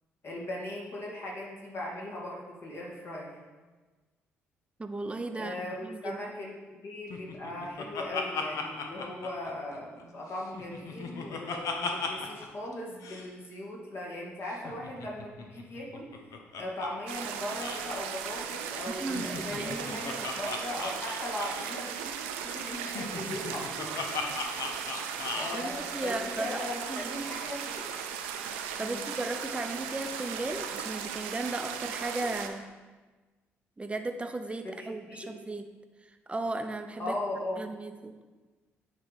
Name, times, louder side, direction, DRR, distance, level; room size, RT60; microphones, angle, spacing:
voice 1, 0.2-3.4 5.4-6.5 6.8-16.1 16.6-24.1 25.3-27.9 28.8-29.0 34.6-35.3 37.0-37.6, left 1 dB, 45° left, -3 dB, 2.1 m, -38 dB
voice 2, 4.8-6.2 19.0-20.0 25.5-26.6 26.9-27.1 28.5-32.6 33.8-35.7 36.3-37.1 37.6-38.1, right 2 dB, 20° right, 7 dB, 0.7 m, -36 dB
Laughter, 7.1-10.0 10.4-12.5 12.7-12.8 13.0-13.3 14.5-16.9 17.1-17.3 17.5-17.9 19.0-21.8 22.8-25.6, left 4 dB, 65° left, 0.8 m, -37 dB
sound 1, 17.1-32.5, right 8 dB, 85° right, 0.4 m, -37 dB
9.2 x 3.3 x 4.2 m, 1.3 s
hypercardioid pair, 50°, 6 cm